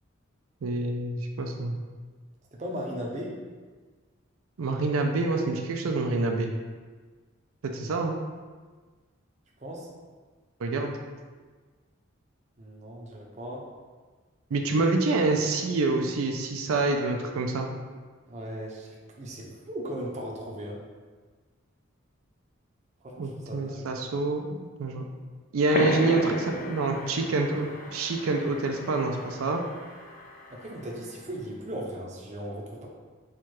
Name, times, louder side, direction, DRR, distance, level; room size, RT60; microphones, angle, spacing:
voice 1, 0.6-1.8 4.6-6.5 7.7-8.2 10.6-10.9 14.5-17.7 23.2-25.0 25.5-29.6, right 3 dB, 85° right, 3 dB, 0.4 m, -27 dB
voice 2, 2.5-3.4 9.6-9.9 12.6-13.6 18.3-20.8 23.0-23.9 30.5-32.9, equal, 35° right, -2 dB, 0.6 m, -37 dB
sound 1, 25.7-30.9, left 2 dB, 40° left, 0.3 m, -35 dB
4.4 x 2.4 x 4.5 m, 1.4 s
head